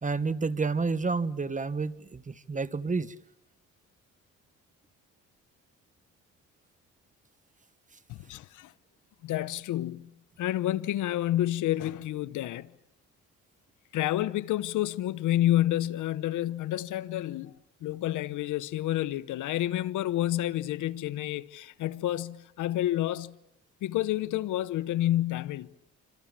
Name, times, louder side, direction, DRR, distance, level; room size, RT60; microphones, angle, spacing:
voice 1, 0.0-3.1, right 4 dB, 25° right, 1.3 m, -30 dB
voice 2, 8.1-8.7 9.2-12.7 13.9-17.5 17.8-23.4 23.8-25.7, left 14 dB, 85° left, 0.9 m, -29 dB
28.0 x 26.0 x 7.5 m
cardioid pair, 90°, 30 cm